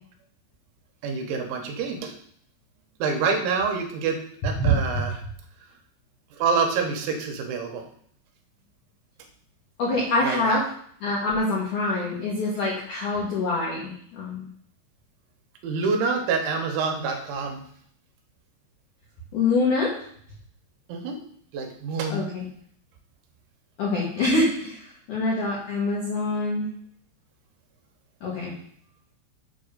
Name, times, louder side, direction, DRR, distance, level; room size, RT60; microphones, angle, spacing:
voice 1, 1.0-2.1 3.0-4.2 4.4-5.2 6.4-7.8 10.2-10.6 15.6-17.6 20.9-21.2 21.5-22.2, right 5 dB, 75° right, 3 dB, 3.1 m, -26 dB
voice 2, 4.6-5.0 9.8-10.6 11.0-14.5 19.3-19.9 22.1-22.5 23.8-26.7 28.2-28.5, left 2 dB, 70° left, -5 dB, 1.9 m, -25 dB
7.7 x 3.5 x 6.5 m, 0.62 s
omnidirectional pair, 5.7 m